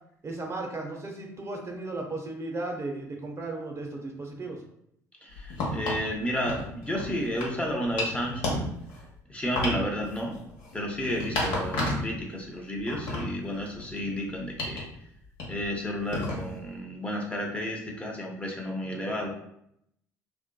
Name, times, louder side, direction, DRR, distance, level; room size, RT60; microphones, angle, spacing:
voice 1, 0.2-4.6, right 2 dB, 30° right, 1 dB, 0.6 m, -35 dB
voice 2, 5.2-8.7 9.3-10.4 10.7-14.9 15.5-19.3, equal, 15° left, 0 dB, 0.7 m, -32 dB
sound 1, 5.3-6.0 6.5-7.6 7.9-9.1 9.5-12.2 12.5-14.1 14.6-14.8 15.4-15.7 16.1-16.6, left 2 dB, 70° left, 0.8 m, -32 dB
2.6 x 2.1 x 2.2 m, 0.73 s
hypercardioid pair, 60°, 9 cm